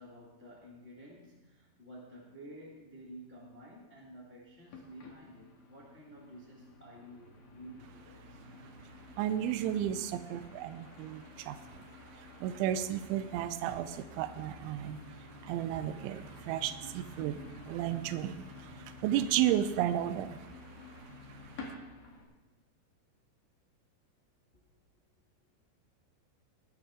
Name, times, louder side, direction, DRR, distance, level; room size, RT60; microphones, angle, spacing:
voice 1, 0.0-8.4 24.5-24.6, equal, 35° left, -5 dB, 1.0 m, -52 dB
sound 1, 4.7-22.2, left 2 dB, 50° left, 2.7 m, -51 dB
voice 2, 9.2-11.9 12.1-20.5 21.0-21.6, right 11 dB, 90° right, 10 dB, 3.0 m, -34 dB
19.5 x 9.8 x 3.7 m, 1.1 s
omnidirectional pair, 5.2 m